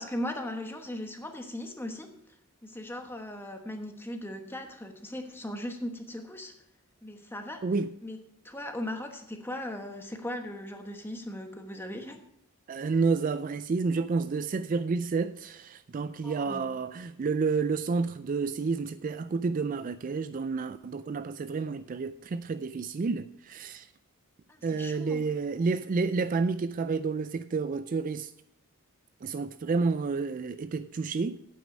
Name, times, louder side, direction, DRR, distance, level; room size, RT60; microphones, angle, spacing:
voice 1, 0.0-2.1 2.6-6.5 7.0-7.6 8.0-8.2 8.4-12.2 16.2-16.7 24.7-25.2, left 1 dB, 10° left, 1.1 m, -38 dB
voice 2, 12.7-23.9 24.6-28.3 29.2-31.4, right 4 dB, 35° right, 0.3 m, -30 dB
9.3 x 8.5 x 6.2 m
head